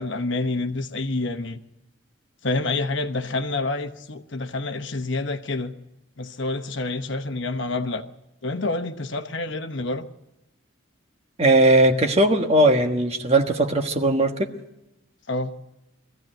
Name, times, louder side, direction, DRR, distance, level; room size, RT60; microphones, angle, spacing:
voice 1, 0.0-1.6 2.4-5.7 6.2-8.0 8.4-10.0 15.3-15.5, left 2 dB, 60° left, 1.1 m, -28 dB
voice 2, 11.4-14.5, right 1 dB, 30° right, 1.4 m, -19 dB
21.0 x 15.0 x 9.0 m
head